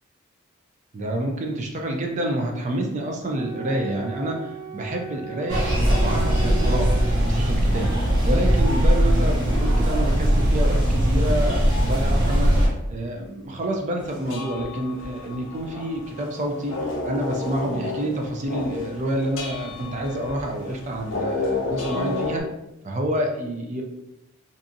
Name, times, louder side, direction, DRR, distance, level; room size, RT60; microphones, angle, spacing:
voice 1, 0.9-22.5 22.8-23.8, right 1 dB, 35° right, 2 dB, 0.4 m, -28 dB
Wind instrument woodwind instrument, 3.3-7.2, right 6 dB, 65° right, 1.0 m, -37 dB
sound 1, 5.5-12.7, equal, 90° right, 1.0 m, -20 dB
sound 2, 14.0-22.4, left 3 dB, 65° left, 0.6 m, -31 dB
2.6 x 2.4 x 2.6 m, 0.88 s
head